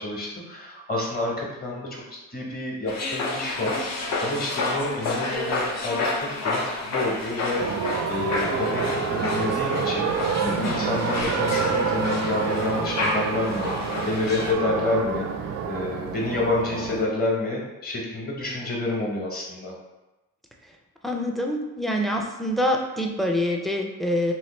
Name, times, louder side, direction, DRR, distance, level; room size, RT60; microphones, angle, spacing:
voice 1, 0.0-2.0 2.3-19.7, left 2 dB, 30° left, -2 dB, 1.0 m, -29 dB
sound 1, 2.9-14.5, left 2 dB, 60° left, 0.7 m, -30 dB
sound 2, 7.6-17.1, right 6 dB, 60° right, 0.4 m, -28 dB
voice 2, 21.0-24.3, equal, ahead, 1 dB, 0.4 m, -26 dB
3.1 x 2.6 x 3.1 m, 1.1 s
cardioid pair, 90°, 30 cm